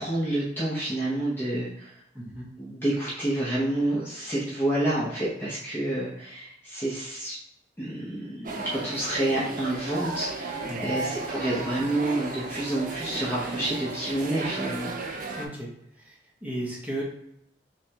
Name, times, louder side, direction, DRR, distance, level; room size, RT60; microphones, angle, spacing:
voice 1, 0.0-1.9 2.6-7.4 7.8-14.9, right 1 dB, 15° left, -7 dB, 0.8 m, -29 dB
voice 2, 2.1-2.5 10.6-11.0 15.4-15.7 16.4-17.0, right 1 dB, 10° right, -5 dB, 1.1 m, -34 dB
sound 1, 8.4-15.5, right 3 dB, 45° right, 0.5 m, -34 dB
3.4 x 3.3 x 2.8 m, 0.74 s
head